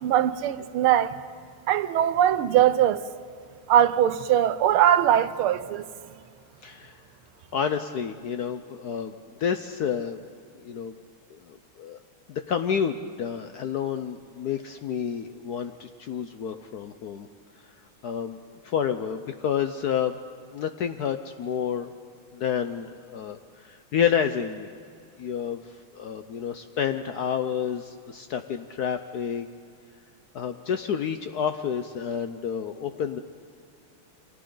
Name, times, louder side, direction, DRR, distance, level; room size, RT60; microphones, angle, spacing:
voice 1, 0.0-1.2 1.7-3.0 3.7-5.9, right 10 dB, 85° right, 1.6 m, -21 dB
voice 2, 6.6-7.0 7.5-10.2 10.6-10.9 11.3-12.0 12.3-17.3 18.0-20.2 20.5-21.9 22.3-24.7 25.2-29.5 30.3-33.2, left 8 dB, 70° left, 1.0 m, -29 dB
29.5 x 25.0 x 3.9 m
omnidirectional pair, 2.3 m